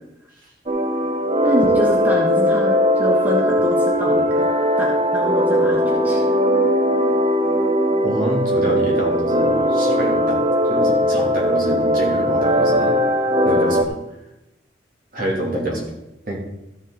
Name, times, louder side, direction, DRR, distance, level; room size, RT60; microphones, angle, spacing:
sound 1, 0.7-13.8, equal, 30° right, 0.7 m, -19 dB
voice 1, 1.4-4.5 4.8-6.2, left 1 dB, 10° right, -3 dB, 1.4 m, -26 dB
voice 2, 8.0-13.0 13.4-13.9 15.1-15.9 16.2-16.4, right 1 dB, 50° right, -3 dB, 2.9 m, -26 dB
14.0 x 7.4 x 4.0 m, 0.92 s
head